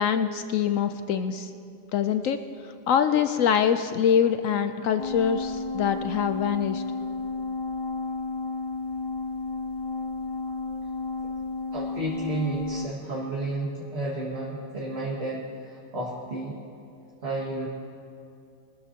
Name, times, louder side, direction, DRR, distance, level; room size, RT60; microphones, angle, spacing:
voice 1, 0.0-1.5 1.9-2.4 2.9-6.8, left 8 dB, 75° left, 9 dB, 0.7 m, -24 dB
sound 1, 5.0-12.9, left 3 dB, 25° left, 0.5 m, -32 dB
voice 2, 11.7-16.6 17.2-17.7, right 2 dB, 35° right, -5 dB, 1.9 m, -32 dB
23.5 x 13.5 x 2.8 m, 2.5 s
omnidirectional pair, 1.9 m